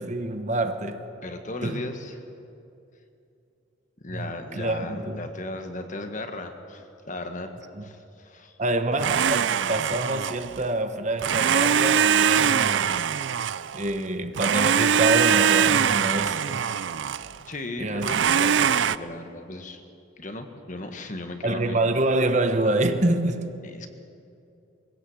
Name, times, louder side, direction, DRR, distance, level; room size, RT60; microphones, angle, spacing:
voice 1, 0.0-1.0 1.6-1.9 4.1-5.2 7.7-7.8 8.6-12.9 13.7-16.7 17.8-18.3 21.4-23.5, right 2 dB, 40° right, 1.1 m, -26 dB
voice 2, 1.2-2.2 4.0-7.5 7.8-8.6 17.5-19.8 20.2-21.8 23.6-23.9, left 2 dB, 40° left, 1.6 m, -36 dB
Domestic sounds home sounds, 9.0-10.6 11.2-14.0 14.4-17.4 18.0-19.0, right 8 dB, 75° right, 0.5 m, -22 dB
23.0 x 17.0 x 8.0 m
head